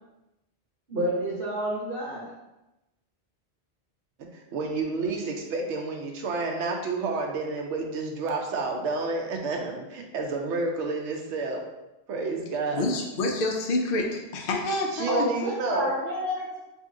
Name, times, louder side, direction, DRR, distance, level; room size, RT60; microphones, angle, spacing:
voice 1, 0.9-2.3 15.1-16.5, right 1 dB, 65° right, -7 dB, 1.5 m, -29 dB
voice 2, 4.2-11.6 12.1-12.9 14.9-15.9, right 3 dB, 90° right, 2 dB, 0.9 m, -30 dB
voice 3, 12.7-15.3, left 2 dB, 60° left, 1 dB, 0.7 m, -27 dB
2.8 x 2.6 x 3.5 m, 0.98 s
omnidirectional pair, 1.2 m